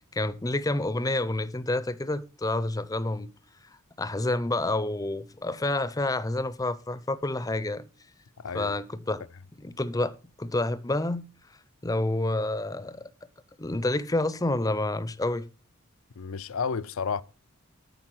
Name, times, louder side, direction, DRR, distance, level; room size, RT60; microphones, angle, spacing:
voice 1, 0.1-3.3 4.0-7.8 8.5-9.2 9.6-11.3 11.8-13.0 13.6-15.5, left 2 dB, 15° left, 0.6 m, -28 dB
voice 2, 8.4-8.8 16.2-17.2, left 6 dB, 80° left, 0.5 m, -31 dB
13.5 x 5.3 x 6.1 m
head